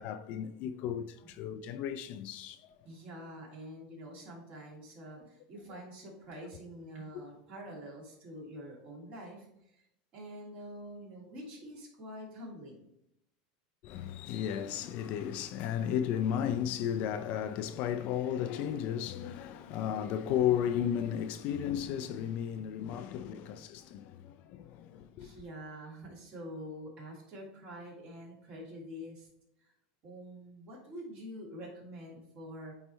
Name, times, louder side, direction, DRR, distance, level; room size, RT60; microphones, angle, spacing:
voice 1, 0.0-2.7 13.8-25.3, left 9 dB, 50° left, 0.4 m, -34 dB
voice 2, 2.8-9.8 10.1-12.9 23.3-23.5 25.2-29.3 29.6-29.7 30.0-32.7, equal, 40° right, 2.8 m, -46 dB
8.8 x 3.3 x 4.4 m
supercardioid pair, 145°, 3 cm